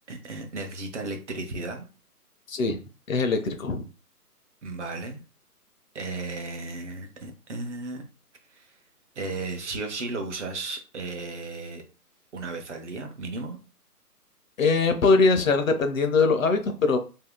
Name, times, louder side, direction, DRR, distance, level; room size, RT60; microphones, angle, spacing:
voice 1, 0.1-1.8 4.6-5.2 5.9-8.0 8.5-8.7 9.2-11.8 12.3-13.6, right 3 dB, 50° right, 4 dB, 0.8 m, -34 dB
voice 2, 2.5-2.8 3.1-3.8 14.6-17.0, left 4 dB, 55° left, 7 dB, 0.6 m, -22 dB
2.8 x 2.6 x 3.5 m, 0.34 s
hypercardioid pair, 160°, 47 cm